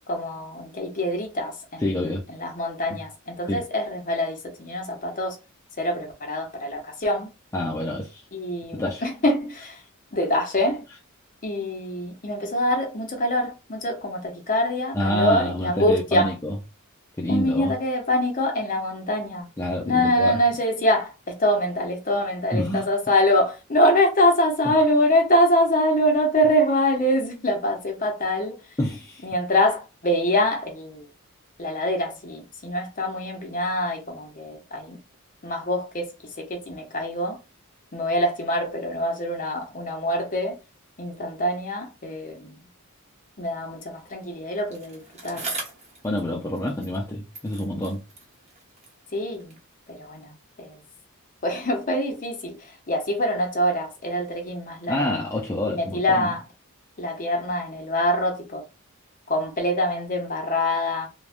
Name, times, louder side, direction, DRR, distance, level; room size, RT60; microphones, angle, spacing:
voice 1, 0.1-1.9 2.3-5.4 5.8-7.3 8.3-9.8 10.1-10.8 11.4-16.3 17.3-19.5 19.8-28.6 29.2-31.1 31.6-35.0 35.4-37.4 37.9-40.6 41.0-42.6 43.4-45.5 49.1-49.6 49.9-50.8 51.4-55.1 55.7-56.4 57.0-58.6 59.3-61.1, left 1 dB, 40° left, 0.8 m, -24 dB
voice 2, 1.8-2.2 2.9-3.0 3.5-3.6 7.5-8.2 8.7-9.0 14.9-16.6 17.2-17.7 19.6-20.4 22.5-22.9 28.8-29.3 46.0-48.0 54.9-56.3, left 1 dB, 15° left, 0.4 m, -27 dB
Bicycle, 44.7-47.1 47.3-49.7 50.5-50.6, right 3 dB, 30° right, 1.0 m, -40 dB
3.1 x 2.2 x 2.5 m
head